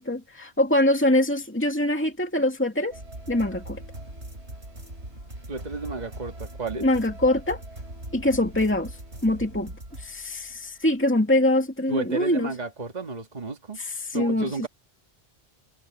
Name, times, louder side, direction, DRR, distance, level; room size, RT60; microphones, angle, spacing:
voice 1, 0.0-3.0 3.3-3.8 6.8-7.6 8.1-9.0 9.2-12.5 13.8-14.5, left 1 dB, 10° left, 2.4 m, -24 dB
sound 1, 2.9-11.0, right 1 dB, 85° right, 6.7 m, -40 dB
voice 2, 5.5-6.9 11.9-13.8 14.1-14.7, right 3 dB, 40° right, 1.9 m, -32 dB
omnidirectional pair, 1.1 m